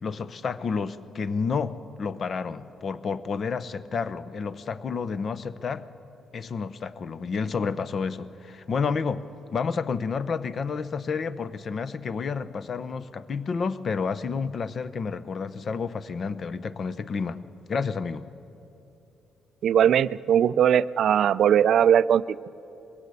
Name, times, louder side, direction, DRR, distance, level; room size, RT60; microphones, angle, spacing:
voice 1, 0.0-5.8 6.3-9.2 9.5-17.4 17.7-18.3, left 5 dB, 50° left, 14 dB, 0.7 m, -30 dB
voice 2, 19.6-22.4, right 9 dB, 65° right, 17 dB, 0.4 m, -20 dB
21.0 x 16.0 x 8.3 m, 3.0 s
cardioid pair, 90°, 0 cm